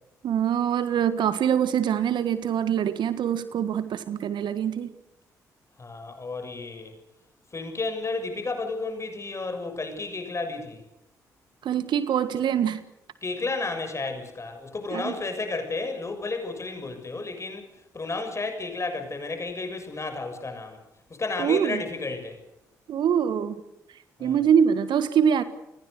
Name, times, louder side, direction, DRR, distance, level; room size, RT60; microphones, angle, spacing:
voice 1, 0.2-4.9 11.6-12.8 14.9-15.1 21.4-21.8 22.9-23.6 24.2-25.4, right 8 dB, 60° right, 13 dB, 1.5 m, -24 dB
voice 2, 5.8-6.9 7.5-10.8 13.2-17.7 17.9-20.8 21.1-22.4 24.2-24.4, left 3 dB, 35° left, 6 dB, 6.6 m, -32 dB
28.5 x 20.5 x 6.6 m, 0.88 s
figure-of-eight pair, 40°, 9 cm